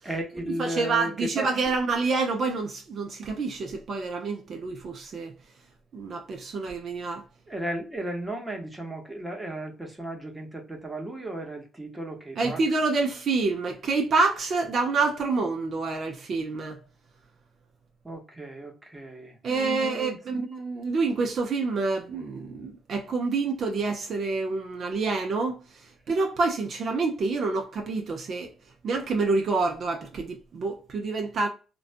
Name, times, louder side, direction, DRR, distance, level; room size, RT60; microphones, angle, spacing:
voice 1, 0.0-1.5 7.5-12.6 18.0-20.2, right 1 dB, 10° right, 1.0 m, -35 dB
voice 2, 0.6-5.3 5.9-7.2 12.4-16.8 19.4-28.5 28.8-31.5, right 3 dB, 55° right, 0.5 m, -27 dB
2.5 x 2.2 x 2.4 m
cardioid pair, 90°, 0 cm